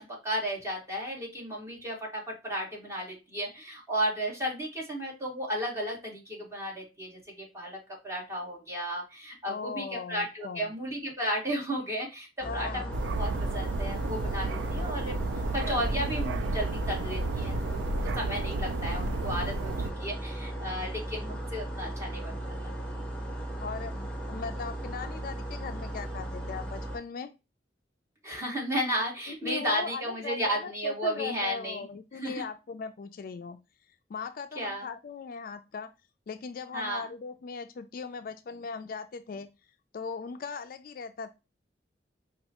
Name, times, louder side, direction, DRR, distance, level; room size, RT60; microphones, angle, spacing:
voice 1, 0.0-15.2 15.5-17.9 18.2-22.5 28.2-31.8 32.2-32.4 34.6-34.9 36.7-37.1, equal, 15° right, -3 dB, 1.8 m, -34 dB
voice 2, 9.5-10.7 12.4-12.9 23.6-27.3 29.3-33.6 34.1-35.9 36.3-39.5 39.9-41.3, left 5 dB, 55° left, 10 dB, 0.3 m, -39 dB
sound 1, 12.4-27.0, right 1 dB, 5° left, 1.1 m, -36 dB
sound 2, 12.9-19.9, right 2 dB, 80° right, 0.4 m, -32 dB
5.3 x 2.3 x 2.8 m, 0.27 s
head